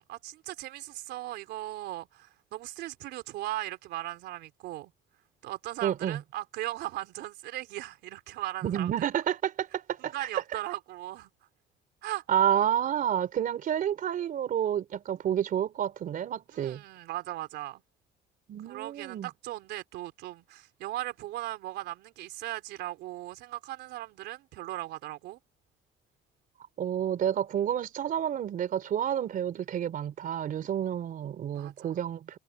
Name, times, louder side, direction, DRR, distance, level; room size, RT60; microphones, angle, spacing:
voice 1, 0.0-4.9 5.4-9.1 10.1-11.3 12.0-12.2 16.5-17.8 18.6-25.4 31.5-32.0, right 15 dB, 80° right, 3.7 m, -38 dB
voice 2, 5.8-6.2 8.6-10.3 12.3-16.8 18.5-19.3 26.8-32.4, right 10 dB, 55° right, 3.6 m, -29 dB
cardioid pair, 110°, 17 cm